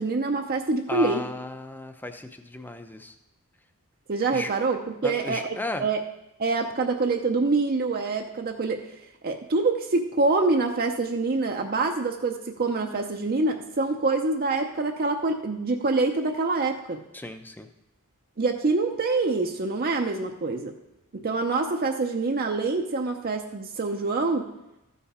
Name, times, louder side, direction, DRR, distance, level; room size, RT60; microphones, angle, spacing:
voice 1, 0.0-1.2 4.1-6.0 6.4-8.9 9.2-17.0 18.4-20.7 21.1-24.5, right 3 dB, 45° right, 3 dB, 0.7 m, -25 dB
voice 2, 0.9-3.1 4.3-4.5 5.0-5.8 17.1-17.7, left 2 dB, 10° left, 8 dB, 0.6 m, -35 dB
13.5 x 5.5 x 4.9 m, 0.91 s
head